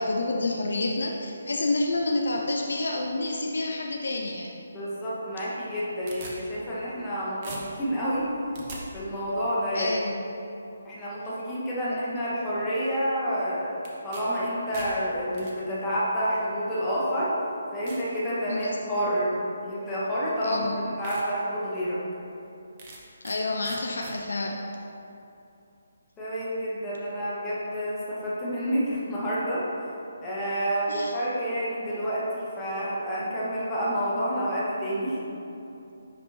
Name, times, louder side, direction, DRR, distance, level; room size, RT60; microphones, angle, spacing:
voice 1, 0.0-4.5 9.7-10.1 11.9-12.0 18.5-18.8 20.4-20.8 23.2-24.6 30.9-31.1, left 2 dB, 60° left, 0 dB, 0.4 m, -29 dB
voice 2, 4.7-8.4 8.9-9.9 10.8-13.8 14.0-17.3 17.7-22.0 26.2-29.6 30.2-35.2, equal, 10° left, -9 dB, 1.2 m, -29 dB
sound 1, 5.6-7.1 7.4-8.8 13.8-14.2 14.5-15.5 16.4-16.5 17.1-17.2 17.9-18.1 18.6-18.9 20.1-20.2 20.6-20.7 21.0-21.2 21.7-21.8 22.8-23.4 23.6-24.1, right 2 dB, 30° right, 0.8 m, -42 dB
9.8 x 3.4 x 2.8 m, 2.8 s
figure-of-eight pair, 145°, 0 cm